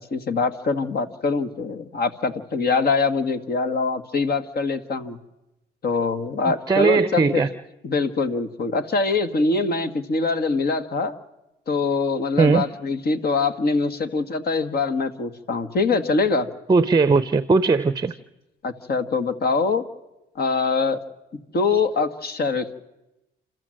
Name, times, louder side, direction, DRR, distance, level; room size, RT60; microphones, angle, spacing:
voice 1, 0.0-5.2 5.8-7.4 7.8-11.2 11.7-16.5 18.6-19.8 20.3-21.0 21.3-22.7, left 4 dB, 50° left, 10 dB, 1.5 m, -23 dB
voice 2, 6.7-7.5 12.4-12.6 16.7-18.1, right 4 dB, 20° right, 13 dB, 0.7 m, -18 dB
28.0 x 13.5 x 7.6 m, 0.98 s
cardioid pair, 90°, 20 cm